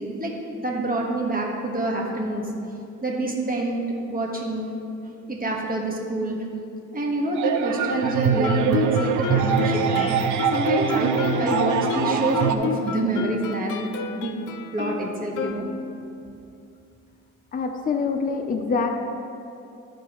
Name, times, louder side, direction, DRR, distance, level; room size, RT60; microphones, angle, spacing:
voice 1, 0.0-2.5 3.0-4.8 5.3-6.4 6.9-14.3 14.7-15.6, right 2 dB, 30° right, -1 dB, 1.5 m, -27 dB
sound 1, 7.4-12.6, right 6 dB, 75° right, 0.5 m, -23 dB
Guitar, 8.4-16.1, left 6 dB, 90° left, 0.6 m, -30 dB
voice 2, 17.5-19.0, left 4 dB, 30° left, 4 dB, 0.6 m, -25 dB
13.0 x 4.6 x 3.1 m, 2.6 s
cardioid pair, 90°, 30 cm